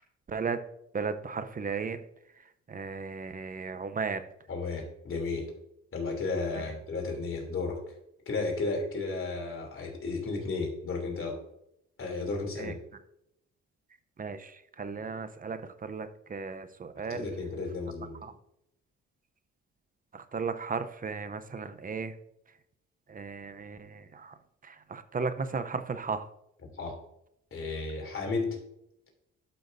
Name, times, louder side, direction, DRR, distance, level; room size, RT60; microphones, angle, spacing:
voice 1, 0.3-0.6 0.9-2.0 2.7-4.2 12.6-12.7 14.2-17.3 18.2-18.3 20.1-22.1 23.1-24.4 24.6-26.3, right 5 dB, 30° right, 10 dB, 0.7 m, -35 dB
voice 2, 4.5-5.5 5.9-7.9 8.3-11.4 12.0-12.7 17.1-18.2 26.7-27.0 27.5-28.6, left 3 dB, 45° left, 1 dB, 3.0 m, -33 dB
12.0 x 5.9 x 2.6 m, 0.80 s
cardioid pair, 90°, 30 cm